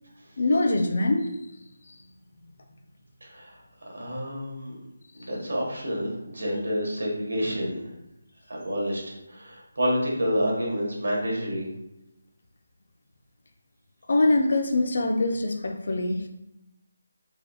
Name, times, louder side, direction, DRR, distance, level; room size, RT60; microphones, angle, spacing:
voice 1, 0.4-1.3 1.9-2.0 14.1-16.3, left 2 dB, 40° left, 4 dB, 0.4 m, -23 dB
voice 2, 3.2-3.6 3.9-4.7 5.2-7.8 8.5-11.6, equal, 70° right, -2 dB, 1.3 m, -28 dB
3.6 x 3.4 x 2.3 m, 0.86 s
figure-of-eight pair, 180°, 0 cm